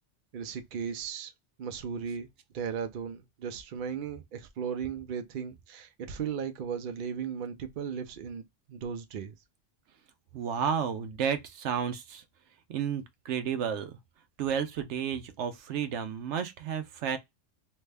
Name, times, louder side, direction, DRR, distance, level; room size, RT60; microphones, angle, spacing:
voice 1, 0.3-1.3 1.6-2.3 2.5-9.3, right 7 dB, 60° right, 0.6 m, -36 dB
voice 2, 10.3-12.2 12.7-14.0 14.4-17.2, right 7 dB, 80° right, 0.9 m, -32 dB
3.2 x 2.1 x 3.3 m
omnidirectional pair, 1.2 m